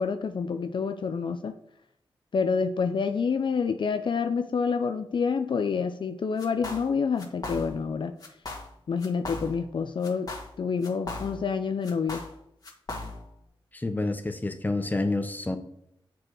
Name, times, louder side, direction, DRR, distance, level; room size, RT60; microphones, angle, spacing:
voice 1, 0.0-1.5 2.3-8.1 8.9-10.3 10.6-12.2, left 5 dB, 60° left, 8 dB, 0.5 m, -28 dB
sound 1, 6.4-6.9 7.2-7.9 8.2-8.7 9.0-9.7 10.0-11.5 11.8-13.4, left 2 dB, 45° left, 1.8 m, -38 dB
voice 2, 13.7-15.6, left 2 dB, 20° left, 7 dB, 0.9 m, -28 dB
7.5 x 4.6 x 4.7 m, 0.75 s
cardioid pair, 65°, 9 cm